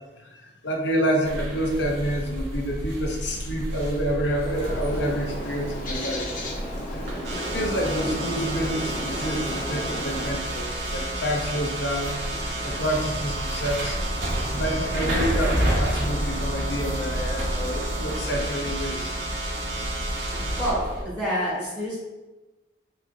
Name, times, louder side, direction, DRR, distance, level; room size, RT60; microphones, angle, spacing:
voice 1, 0.2-6.3 6.9-7.2 7.5-14.0 14.5-19.1, equal, 80° left, 1 dB, 0.8 m, -28 dB
sound 1, 1.2-21.0, equal, 85° right, 1.2 m, -31 dB
Bird, 4.4-10.4, left 1 dB, 50° left, 1.0 m, -34 dB
voice 2, 6.9-7.2 20.6-22.0, equal, 10° left, -8 dB, 1.5 m, -28 dB
sound 2, 7.2-20.7, right 1 dB, 65° right, 1.2 m, -32 dB
6.8 x 2.9 x 2.6 m, 1.1 s
head